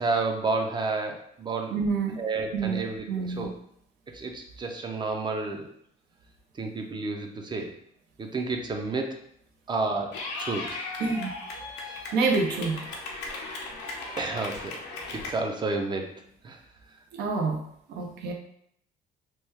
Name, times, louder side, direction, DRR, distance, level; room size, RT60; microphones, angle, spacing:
voice 1, 0.0-1.7 2.2-3.5 4.1-5.7 6.6-7.7 8.2-9.2 9.7-10.7 11.9-12.0 14.2-14.8 15.1-16.1 16.4-16.6, right 3 dB, 25° right, 3 dB, 0.5 m, -30 dB
voice 2, 1.7-2.2 2.5-2.8 3.1-3.5 11.0-11.3 12.1-12.8 17.1-17.6 17.9-18.3, right 4 dB, 75° right, 3 dB, 0.6 m, -27 dB
Clapping / Cheering, 10.1-15.3, left 3 dB, 85° left, 0.7 m, -37 dB
3.0 x 2.2 x 3.4 m, 0.70 s
cardioid pair, 110°, 17 cm